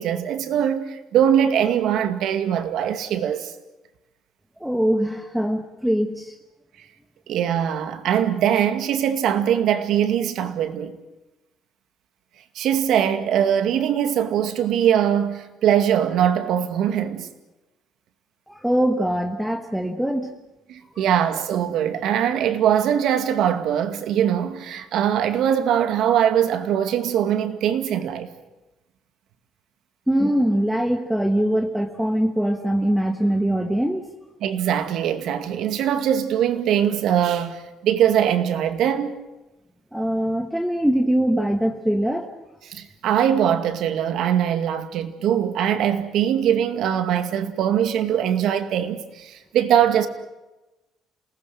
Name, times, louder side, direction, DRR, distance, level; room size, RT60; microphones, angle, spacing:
voice 1, 0.0-3.5 7.3-11.0 12.6-17.3 20.7-28.3 34.4-39.2 42.7-50.1, right 9 dB, 65° right, 2.2 m, -22 dB
voice 2, 4.6-6.4 18.5-20.3 20.9-21.0 30.1-34.0 39.9-42.3, right 1 dB, ahead, 1.2 m, -22 dB
28.5 x 19.0 x 7.7 m
cardioid pair, 150°, 0 cm